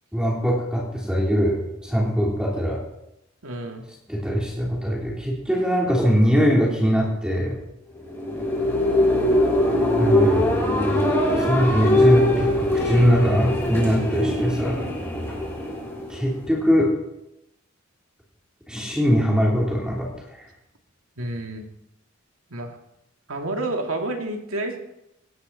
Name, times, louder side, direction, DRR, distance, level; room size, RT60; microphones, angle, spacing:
voice 1, 0.1-2.8 4.1-7.6 10.0-10.5 11.3-14.9 16.1-16.9 18.7-20.1 20.4-20.5, equal, 5° right, -3 dB, 3.4 m, -21 dB
voice 2, 3.4-3.8 21.2-21.7 22.5-22.8 23.3-24.8, right 2 dB, 80° right, 3 dB, 2.5 m, -29 dB
sound 1, 8.0-16.6, left 1 dB, 10° left, 6.3 m, -22 dB
18.5 x 14.5 x 4.2 m, 0.84 s
head